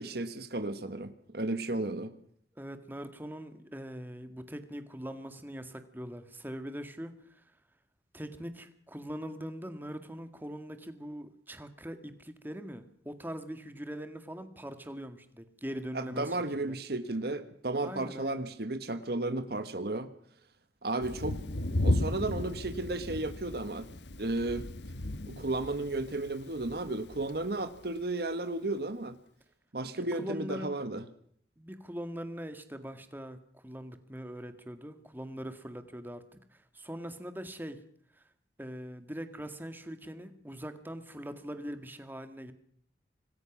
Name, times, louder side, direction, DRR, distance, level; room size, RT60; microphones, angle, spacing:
voice 1, 0.0-2.1 15.9-20.1 20.8-21.4 21.7-23.9 24.2-24.7 25.3-29.2 29.7-31.0, right 2 dB, 60° right, 11 dB, 1.4 m, -33 dB
voice 2, 2.5-7.5 8.1-16.8 17.8-18.5 30.0-30.8 31.6-37.8 38.1-38.2 38.6-42.5, equal, 10° right, 8 dB, 1.9 m, -42 dB
Thunder, 21.0-27.8, left 1 dB, 75° left, 1.2 m, -35 dB
26.0 x 20.0 x 6.2 m, 0.62 s
head